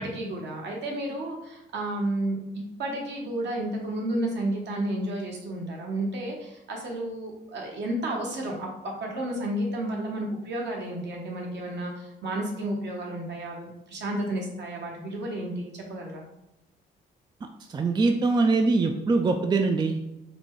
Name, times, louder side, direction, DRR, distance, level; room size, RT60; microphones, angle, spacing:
voice 1, 0.0-16.2, right 1 dB, 60° right, -1 dB, 1.2 m, -32 dB
voice 2, 17.7-20.0, right 3 dB, 20° right, 5 dB, 0.4 m, -23 dB
4.1 x 2.2 x 4.5 m, 0.91 s
cardioid pair, 90°, 20 cm